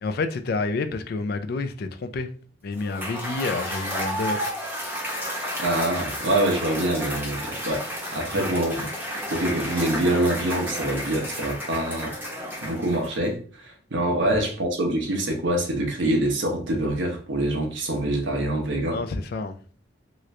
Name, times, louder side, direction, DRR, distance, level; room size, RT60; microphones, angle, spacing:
voice 1, 0.0-2.3 2.6-4.5 8.3-8.4 18.9-19.6, left 3 dB, 55° left, 0.4 m, -29 dB
Cheering / Applause / Crowd, 2.8-13.2, equal, 10° right, 0.7 m, -32 dB
voice 2, 5.6-7.9 8.1-8.9 9.3-19.0, right 1 dB, 90° right, 0.9 m, -25 dB
2.9 x 2.5 x 3.1 m
head